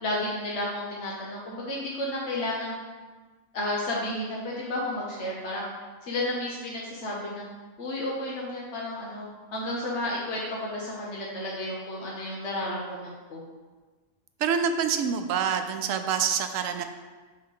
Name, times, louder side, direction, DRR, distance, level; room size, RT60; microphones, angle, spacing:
voice 1, 0.0-2.8 3.5-5.7 6.0-7.4 7.8-13.5, left 1 dB, 60° left, -4 dB, 1.2 m, -32 dB
voice 2, 14.4-16.8, right 7 dB, 85° right, 8 dB, 1.0 m, -26 dB
6.6 x 3.4 x 5.5 m, 1.3 s
omnidirectional pair, 1.3 m